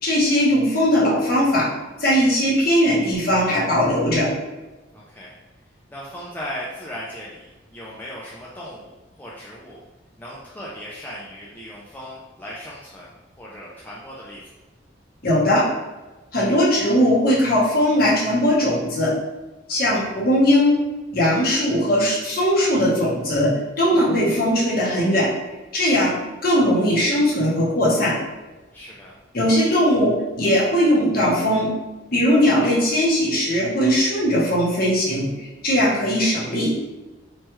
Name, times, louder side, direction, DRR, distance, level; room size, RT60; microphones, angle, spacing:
voice 1, 0.0-1.7 2.0-4.3 15.2-15.7 16.3-19.1 19.7-20.8 21.1-23.5 23.8-25.3 25.7-28.2 29.3-31.7 32.1-36.7, equal, 50° left, -6 dB, 0.9 m, -19 dB
voice 2, 4.9-5.4 5.9-9.8 10.2-13.1 13.4-14.4 28.7-29.1, equal, 10° left, -6 dB, 0.3 m, -37 dB
3.1 x 2.2 x 2.9 m, 1.2 s
head